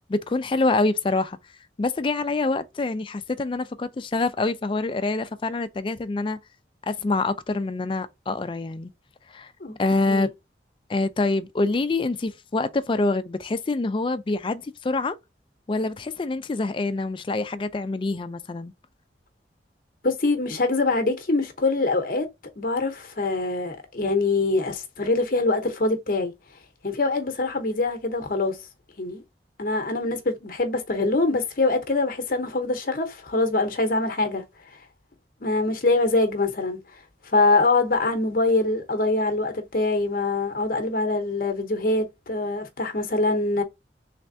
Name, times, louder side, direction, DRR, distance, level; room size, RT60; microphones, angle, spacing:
voice 1, 0.1-1.4 1.8-6.4 6.8-8.9 9.3-9.5 9.8-10.3 10.9-15.2 15.7-18.7, left 3 dB, 30° left, 0.3 m, -26 dB
voice 2, 20.0-22.3 22.6-26.3 26.8-28.6 29.0-29.2 29.6-34.4 35.4-36.8 37.3-43.6, left 2 dB, 50° left, 0.8 m, -24 dB
3.3 x 3.3 x 2.6 m
head